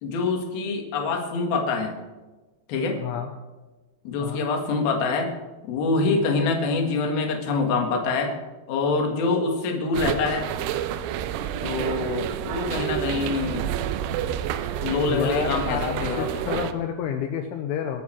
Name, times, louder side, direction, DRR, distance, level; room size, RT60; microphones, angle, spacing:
voice 1, 0.0-1.9 2.7-3.0 4.0-5.3 5.7-8.3 8.7-10.5 11.6-13.7 14.8-16.4, left 3 dB, 60° left, 2 dB, 3.2 m, -25 dB
voice 2, 3.0-3.3 4.2-4.4 15.0-18.0, left 9 dB, 80° left, 5 dB, 3.2 m, -29 dB
sound 1, 9.9-16.7, right 10 dB, 85° right, 3.1 m, -29 dB
22.5 x 8.6 x 4.5 m, 1.2 s
omnidirectional pair, 5.8 m